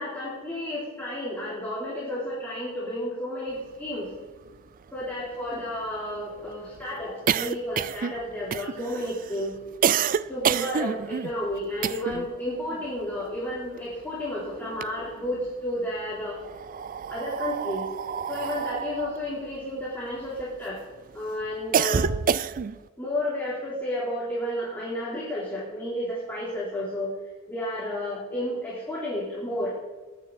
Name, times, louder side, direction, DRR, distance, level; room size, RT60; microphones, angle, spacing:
voice 1, 0.0-4.1 4.9-9.5 10.3-16.4 17.1-17.9 18.3-20.8 21.1-22.2 23.0-27.1 27.5-29.7, left 1 dB, 10° left, -8 dB, 3.7 m, -32 dB
sound 1, 4.1-4.2 4.5-4.6 4.9-12.4 12.6-14.2 14.6-15.5 16.2-20.7 21.1-22.9, right 7 dB, 40° right, 0.4 m, -28 dB
20.5 x 10.5 x 4.1 m, 1.3 s
head